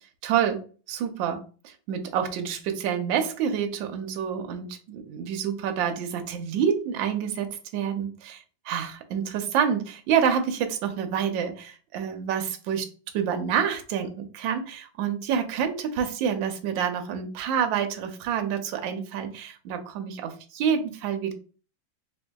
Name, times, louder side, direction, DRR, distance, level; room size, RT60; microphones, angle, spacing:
voice 1, 0.2-12.9 13.1-21.3, right 8 dB, 75° right, 6 dB, 1.3 m, -28 dB
4.6 x 2.6 x 2.2 m, 0.37 s
omnidirectional pair, 2.2 m